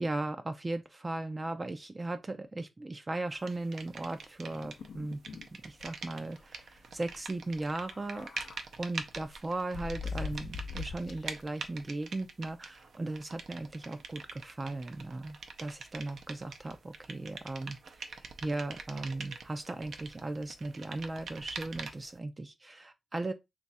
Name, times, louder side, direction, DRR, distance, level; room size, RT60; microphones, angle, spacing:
voice 1, 0.0-5.2 5.5-8.3 8.8-23.3, right 2 dB, 25° right, 0.4 m, -37 dB
sound 1, 3.5-4.9 5.1-22.2, right 4 dB, 75° right, 0.5 m, -45 dB
sound 2, 4.5-5.5 5.8-5.9 6.2-6.4 7.6-8.6 9.1-11.4, left 5 dB, 75° left, 0.4 m, -42 dB
3.0 x 2.4 x 4.0 m
wide cardioid pair, 125°, 0 cm